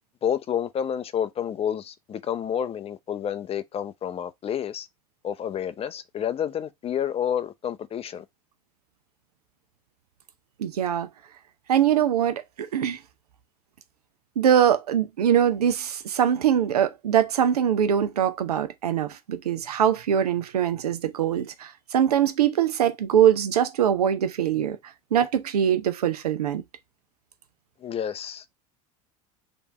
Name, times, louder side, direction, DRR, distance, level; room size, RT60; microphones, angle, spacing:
voice 1, 0.2-4.9 5.2-8.2 27.8-28.5, left 9 dB, 30° left, 0.6 m, -29 dB
voice 2, 10.6-11.1 11.7-13.0 14.4-24.8 25.1-26.6, right 9 dB, 90° right, 0.7 m, -22 dB
3.4 x 3.1 x 4.2 m
hypercardioid pair, 85°, 19 cm